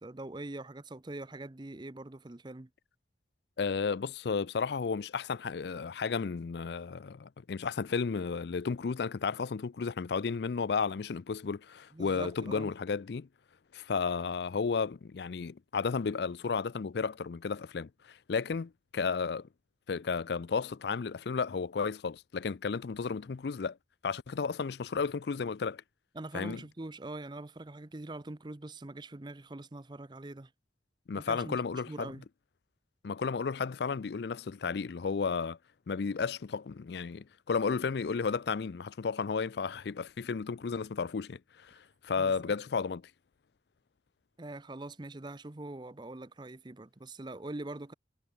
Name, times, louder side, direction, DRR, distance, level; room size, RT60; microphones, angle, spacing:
voice 1, 0.0-2.7 11.9-12.7 26.1-30.5 31.1-32.2 42.2-42.5 44.4-47.9, right 2 dB, 25° right, 0.6 m, -43 dB
voice 2, 3.6-13.3 13.7-19.5 19.9-23.8 24.0-25.8 26.3-26.6 31.1-32.1 33.0-35.6 35.9-43.0, left 5 dB, 65° left, 0.4 m, -33 dB
head